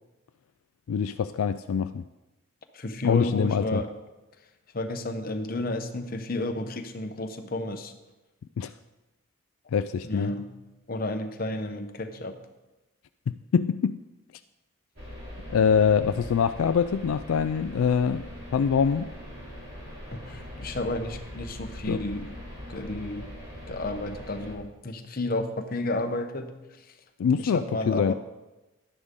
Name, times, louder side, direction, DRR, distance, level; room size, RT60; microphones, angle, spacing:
voice 1, 0.9-2.0 3.0-3.8 8.6-8.7 9.7-10.3 13.3-14.0 15.5-18.3 18.5-19.1 21.9-22.0 27.2-28.1, left 6 dB, 75° left, 11 dB, 0.3 m, -24 dB
voice 2, 2.7-3.9 4.7-7.9 10.0-10.5 10.9-12.4 20.1-22.3 22.7-23.2 23.7-26.5 27.4-28.1, left 2 dB, 40° left, 6 dB, 0.8 m, -31 dB
sound 1, 15.0-24.5, equal, 50° right, 2.9 m, -41 dB
11.5 x 10.0 x 3.7 m, 1.1 s
head